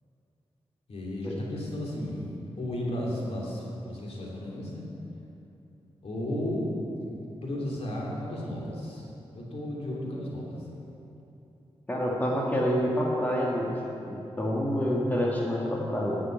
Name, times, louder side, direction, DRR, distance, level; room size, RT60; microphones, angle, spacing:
voice 1, 0.9-4.9 6.0-9.1 9.3-10.8, left 1 dB, 75° left, -4 dB, 2.9 m, -34 dB
voice 2, 11.9-13.8 14.1-16.2, equal, 15° left, -3 dB, 1.9 m, -27 dB
11.0 x 6.6 x 9.3 m, 2.9 s
wide cardioid pair, 95°, 11 cm